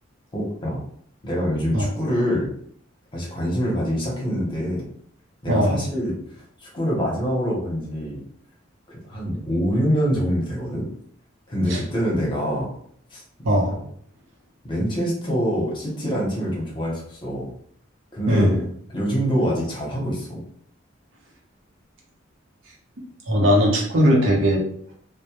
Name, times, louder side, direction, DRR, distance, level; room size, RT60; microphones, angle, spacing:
voice 1, 0.3-0.8 1.2-2.5 3.1-4.9 5.4-6.2 6.6-8.2 8.9-10.9 11.5-12.7 13.1-13.2 13.7-13.8 14.6-17.5 18.1-18.6 18.9-20.4, equal, 25° left, -4 dB, 0.7 m, -25 dB
voice 2, 5.5-5.8 11.7-11.8 13.4-13.8 18.3-18.6 23.3-24.6, equal, 80° right, -1 dB, 0.7 m, -19 dB
2.1 x 2.0 x 2.8 m, 0.63 s
head